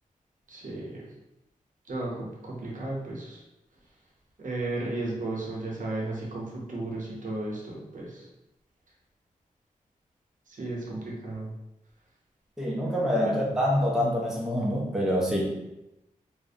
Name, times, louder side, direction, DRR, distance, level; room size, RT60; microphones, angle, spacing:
voice 1, 0.5-1.0 1.9-3.4 4.4-8.3 10.5-11.5 13.3-13.6, right 2 dB, 65° right, -3 dB, 0.7 m, -34 dB
voice 2, 12.6-15.7, equal, 5° right, -3 dB, 0.5 m, -26 dB
2.4 x 2.1 x 2.6 m, 0.92 s
wide cardioid pair, 85°, 14 cm